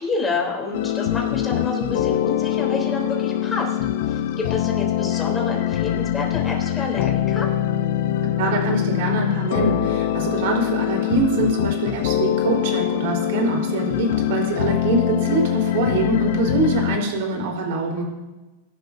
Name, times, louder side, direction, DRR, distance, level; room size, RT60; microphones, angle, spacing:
voice 1, 0.0-3.8 4.1-7.5, left 3 dB, 15° left, -1 dB, 3.6 m, -28 dB
sound 1, 0.7-17.0, left 11 dB, 65° left, 0.8 m, -23 dB
voice 2, 8.4-18.1, right 2 dB, 65° right, 0 dB, 4.3 m, -24 dB
23.0 x 11.5 x 2.8 m, 1.1 s
supercardioid pair, 140°, 0 cm